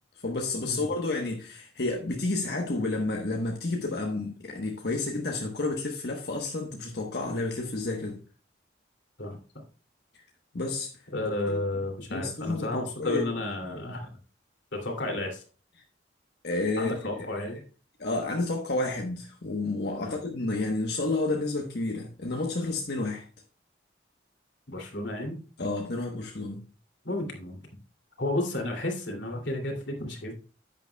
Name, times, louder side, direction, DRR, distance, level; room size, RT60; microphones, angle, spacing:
voice 1, 0.2-8.2 10.5-10.9 11.5-11.6 12.1-13.2 16.4-17.2 18.0-23.2 25.6-26.6, left 2 dB, 60° left, 1.1 m, -30 dB
voice 2, 9.2-9.6 11.1-14.1 14.7-15.4 16.8-17.6 20.0-20.2 24.7-25.4 27.0-27.6 28.2-30.3, left 2 dB, 80° left, 2.7 m, -32 dB
10.5 x 9.1 x 2.3 m
head